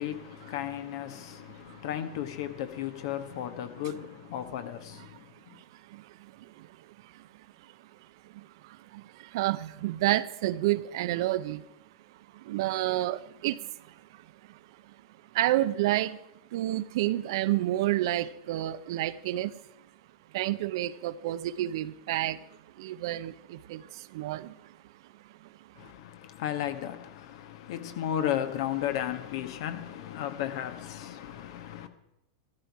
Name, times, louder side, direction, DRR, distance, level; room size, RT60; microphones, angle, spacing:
voice 1, 0.0-5.6 25.8-31.9, left 11 dB, 65° left, 1.4 m, -34 dB
voice 2, 5.9-6.7 7.1-7.3 8.3-11.6 12.3-13.7 14.1-14.2 14.5-14.6 15.3-16.2 16.5-19.6 20.3-22.4 22.8-24.7, right 15 dB, 65° right, 0.7 m, -30 dB
14.0 x 12.5 x 4.8 m
hypercardioid pair, 120°, 3 cm